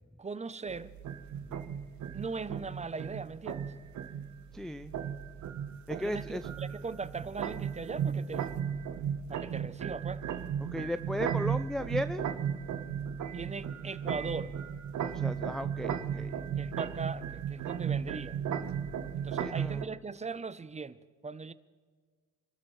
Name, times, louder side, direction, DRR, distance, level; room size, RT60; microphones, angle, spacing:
voice 1, 0.2-0.9 2.1-3.7 6.0-8.5 9.3-10.2 13.3-14.5 16.6-18.4 19.1-21.0 21.2-21.5, right 4 dB, 20° right, 0.7 m, -39 dB
sound 1, 0.7-19.8, right 8 dB, 70° right, 1.1 m, -35 dB
voice 2, 4.5-5.0 5.9-6.4 10.6-12.3 15.0-16.3 19.3-19.8, left 1 dB, ahead, 0.4 m, -36 dB
27.5 x 13.0 x 3.3 m
cardioid pair, 90°, 30 cm